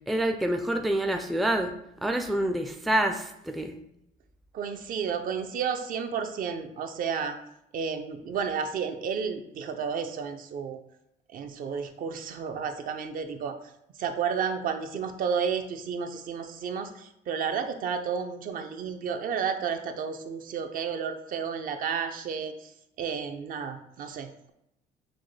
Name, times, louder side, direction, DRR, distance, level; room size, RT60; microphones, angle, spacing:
voice 1, 0.1-1.8 2.0-3.7, right 1 dB, ahead, 5 dB, 0.3 m, -27 dB
voice 2, 4.5-7.4 7.7-10.8 11.3-13.6 14.0-22.7 23.0-24.5, right 6 dB, 55° right, 7 dB, 0.5 m, -32 dB
6.1 x 2.1 x 3.2 m, 0.79 s
cardioid pair, 110°, 17 cm